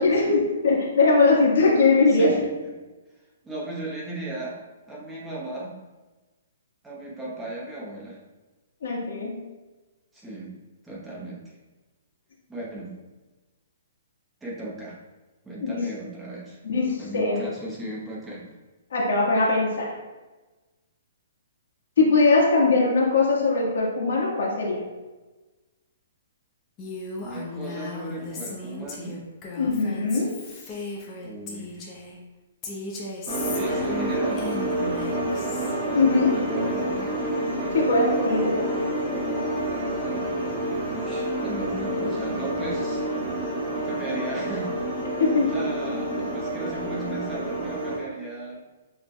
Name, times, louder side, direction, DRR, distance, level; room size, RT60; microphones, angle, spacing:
voice 1, 0.0-2.3 8.8-9.4 15.6-15.8 16.6-17.4 18.9-19.9 22.0-24.8 29.6-30.3 35.9-36.5 37.7-38.7 45.2-45.5, left 3 dB, 70° left, -3 dB, 1.4 m, -21 dB
voice 2, 2.1-2.5 3.4-4.6 4.9-5.7 6.8-8.2 10.1-10.5 10.8-11.4 12.5-12.9 14.4-15.0 15.4-16.6 17.0-18.5 27.2-29.2 30.5-30.9 31.2-31.8 33.5-35.4 35.9-37.2 40.8-43.2 43.8-45.1 45.4-48.6, right 2 dB, 5° right, -6 dB, 0.8 m, -36 dB
Female speech woman speaking, 26.8-32.2 32.6-35.7, left 3 dB, 20° left, 0.6 m, -36 dB
sound 1, 33.3-48.0, right 1 dB, 25° right, 1.4 m, -28 dB
6.4 x 3.2 x 2.2 m, 1.2 s
hypercardioid pair, 170°, 0 cm